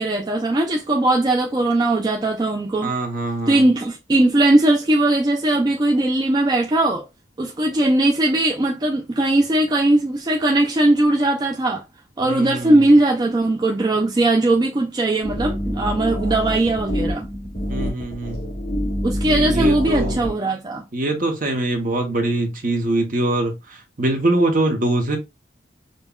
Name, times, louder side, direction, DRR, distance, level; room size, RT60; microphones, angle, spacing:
voice 1, 0.0-2.9 3.5-7.0 7.4-11.8 12.2-17.3 19.0-20.8, right 2 dB, 20° right, 0.3 m, -19 dB
voice 2, 2.8-3.6 12.2-12.9 17.7-18.5 19.2-20.2 20.9-25.2, right 2 dB, 45° right, 0.8 m, -23 dB
sound 1, 15.2-20.3, equal, 50° left, 2.0 m, -26 dB
5.3 x 2.2 x 2.2 m
head